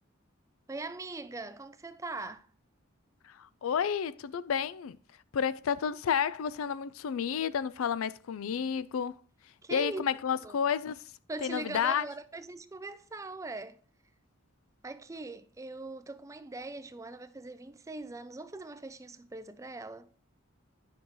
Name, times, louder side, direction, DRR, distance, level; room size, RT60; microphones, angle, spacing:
voice 1, 0.7-2.5 9.6-10.1 10.4-10.6 11.3-13.8 14.8-20.1, right 2 dB, 15° right, 0.4 m, -41 dB
voice 2, 3.2-5.0 5.3-9.2 9.7-11.0 11.4-12.0, left 7 dB, 80° left, 0.4 m, -31 dB
10.0 x 5.5 x 3.0 m
head